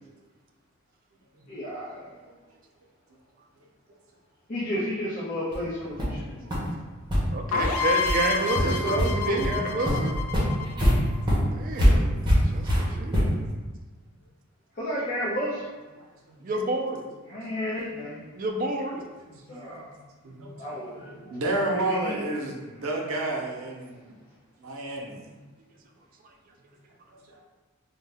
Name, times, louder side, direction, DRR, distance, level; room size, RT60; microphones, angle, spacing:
voice 1, 1.5-2.0 4.5-6.5 14.8-15.6 17.3-18.2 19.5-19.9 20.6-21.3 21.7-22.1, equal, 45° left, -8 dB, 0.6 m, -32 dB
sound 1, 5.5-5.6 6.0-6.2 6.5-6.6 7.1-7.2 7.6-7.7 8.0-8.2 8.5-9.1 9.4-9.5 9.8-13.5, equal, 20° right, 0.8 m, -23 dB
voice 2, 7.3-10.2 11.5-13.2 16.4-17.0 18.4-19.0, right 2 dB, 40° right, 3 dB, 0.3 m, -30 dB
sound 2, 7.5-11.2, left 6 dB, 90° left, 0.3 m, -29 dB
voice 3, 7.8-9.7 12.5-13.1 16.0-16.5 16.9-17.0 18.9-19.8 20.2-21.0 21.3-24.1 24.6-25.4 27.3-27.4, right 2 dB, 85° right, -1 dB, 0.6 m, -32 dB
2.6 x 2.2 x 3.3 m, 1.3 s
head